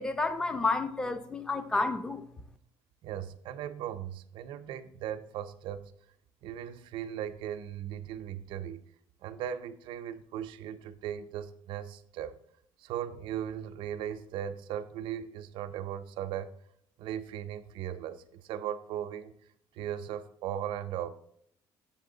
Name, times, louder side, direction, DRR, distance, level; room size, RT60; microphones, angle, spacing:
voice 1, 0.0-2.3, left 3 dB, 10° left, 0.4 m, -30 dB
voice 2, 3.0-5.9 6.4-8.8 9.2-12.4 12.8-16.5 17.0-19.3 19.7-21.1, right 10 dB, 70° right, 0.6 m, -38 dB
7.4 x 7.3 x 3.8 m
cardioid pair, 160°, 9 cm